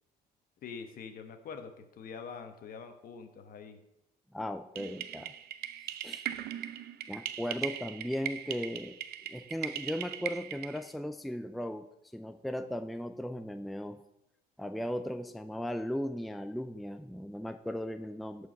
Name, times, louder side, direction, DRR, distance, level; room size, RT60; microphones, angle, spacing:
voice 1, 0.6-3.8, left 6 dB, 60° left, 7 dB, 1.2 m, -45 dB
voice 2, 4.3-5.3 5.8-6.2 7.1-9.0 9.3-11.9 12.1-14.0 14.6-18.5, equal, ahead, 8 dB, 0.5 m, -37 dB
sound 1, 4.7-10.9, right 11 dB, 70° right, 0.6 m, -39 dB
12.5 x 4.9 x 5.2 m, 0.87 s
cardioid pair, 110°, 17 cm